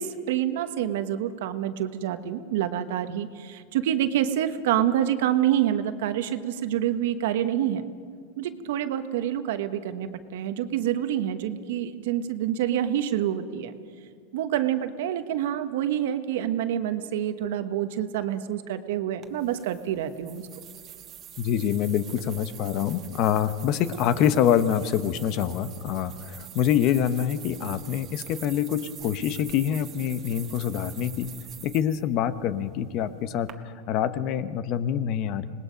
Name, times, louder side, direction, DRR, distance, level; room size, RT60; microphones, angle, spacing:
voice 1, 0.0-7.8 8.4-13.7 14.3-20.5, right 11 dB, 75° right, 10 dB, 1.2 m, -27 dB
sound 1, 19.2-33.5, right 10 dB, 35° right, 1.4 m, -45 dB
voice 2, 21.4-35.5, left 9 dB, 50° left, 13 dB, 1.0 m, -26 dB
26.0 x 19.5 x 5.2 m, 2.1 s
supercardioid pair, 125°, 0 cm